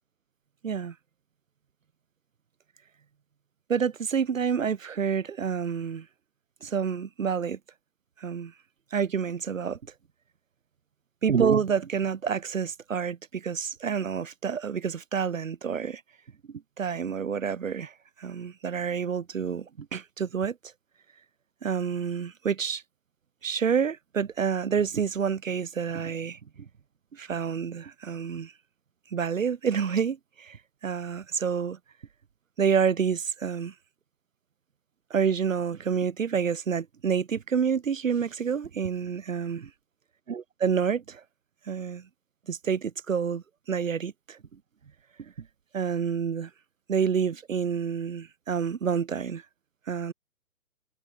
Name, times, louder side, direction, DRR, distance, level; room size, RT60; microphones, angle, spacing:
voice 1, 0.6-0.9 3.7-6.1 6.6-7.6 8.2-8.5 8.9-9.8 11.2-16.0 16.8-20.6 21.6-22.8 23.4-26.7 27.1-28.5 29.1-30.6 30.8-31.8 32.6-33.7 35.1-39.7 40.3-41.2 41.7-42.1 42.5-44.4 45.2-45.3 45.7-46.5 46.9-49.4 49.9-50.1, right 6 dB, 60° right, 3.4 m, -28 dB
figure-of-eight pair, 135°, 44 cm